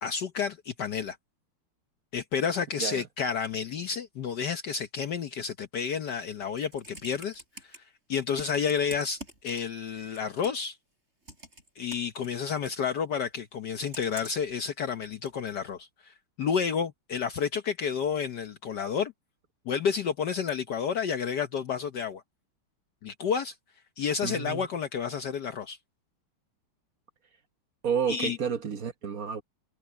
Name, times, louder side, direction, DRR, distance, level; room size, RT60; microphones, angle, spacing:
voice 1, 0.0-1.2 2.1-7.8 8.1-10.8 11.8-19.1 19.7-22.2 23.0-23.5 24.0-25.8 28.1-28.4, left 6 dB, 60° left, 1.3 m, -30 dB
Computer keyboard, 6.4-7.8 8.4-9.9 10.1-10.7 11.3-12.8 13.9-14.5 15.3-15.4, right 1 dB, 30° right, 7.6 m, -45 dB
voice 2, 24.2-24.7 27.8-29.4, right 7 dB, 50° right, 1.3 m, -30 dB
omnidirectional pair, 2.4 m